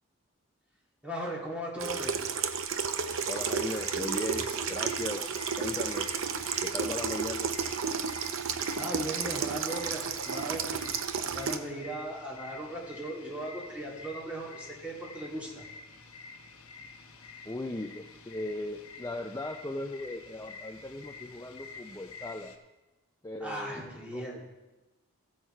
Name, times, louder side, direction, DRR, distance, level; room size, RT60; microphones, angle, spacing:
voice 1, 1.0-2.1 8.5-10.9 11.2-15.6 23.4-24.4, right 1 dB, 5° right, -6 dB, 2.6 m, -38 dB
Water tap faucet / Sink (filling or washing), 1.8-11.6, right 6 dB, 65° right, 0.6 m, -32 dB
sound 1, 3.1-22.6, left 4 dB, 80° left, 1.1 m, -49 dB
voice 2, 3.3-5.2 5.6-6.1 6.6-7.5 17.4-22.5 23.2-24.5, left 1 dB, 15° left, 4 dB, 0.4 m, -38 dB
15.5 x 6.4 x 4.5 m, 1.1 s
head